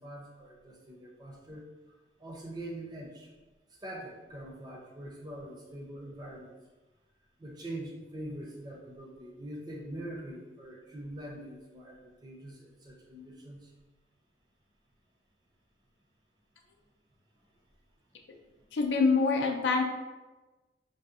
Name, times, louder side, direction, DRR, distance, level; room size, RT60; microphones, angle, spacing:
voice 1, 0.0-1.6 2.2-3.3 3.8-6.6 7.4-13.7, right 1 dB, 20° right, -2 dB, 0.4 m, -43 dB
voice 2, 18.7-19.8, left 4 dB, 80° left, 2 dB, 0.4 m, -25 dB
2.7 x 2.0 x 3.5 m, 1.2 s
head